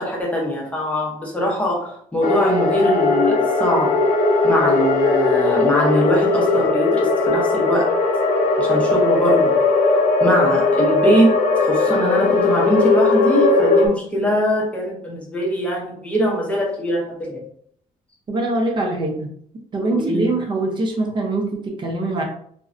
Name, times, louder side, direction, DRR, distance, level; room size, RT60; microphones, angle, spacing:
voice 1, 0.0-4.1 4.4-7.9 8.6-9.6 10.2-17.4 19.9-20.3, equal, 10° left, -3 dB, 0.7 m, -22 dB
sound 1, 2.2-13.9, left 3 dB, 75° left, 0.4 m, -18 dB
voice 2, 18.3-19.3 19.7-22.2, right 2 dB, 35° right, 1 dB, 0.6 m, -23 dB
2.5 x 2.1 x 2.5 m, 0.64 s
cardioid pair, 160°, 14 cm